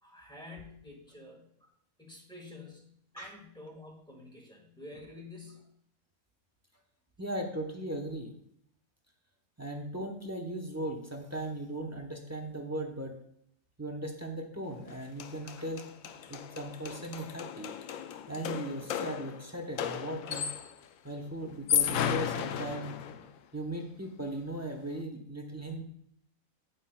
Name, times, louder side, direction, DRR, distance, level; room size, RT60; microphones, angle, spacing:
voice 1, 0.0-1.7 2.0-5.6, left 2 dB, 5° left, -2 dB, 1.5 m, -49 dB
voice 2, 7.2-8.3 9.6-13.2 13.8-17.7 18.3-20.5 21.0-23.0 23.5-25.8, right 1 dB, 15° right, 3 dB, 0.6 m, -38 dB
sound 1, 14.9-15.0 15.2-20.8 21.5-23.3, left 9 dB, 80° left, 1.0 m, -34 dB
9.4 x 8.3 x 2.2 m, 0.70 s
omnidirectional pair, 1.5 m